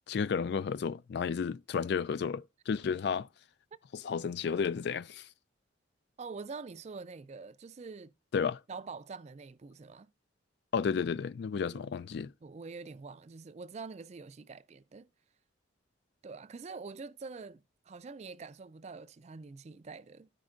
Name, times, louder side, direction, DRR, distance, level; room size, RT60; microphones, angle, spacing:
voice 1, 0.1-3.3 4.0-5.3 8.3-8.6 10.7-12.3, left 6 dB, 60° left, 0.3 m, -32 dB
voice 2, 6.2-8.1 8.7-10.1 11.7-11.9 12.4-15.1 16.2-20.3, right 4 dB, 35° right, 0.4 m, -45 dB
13.5 x 5.2 x 2.4 m
head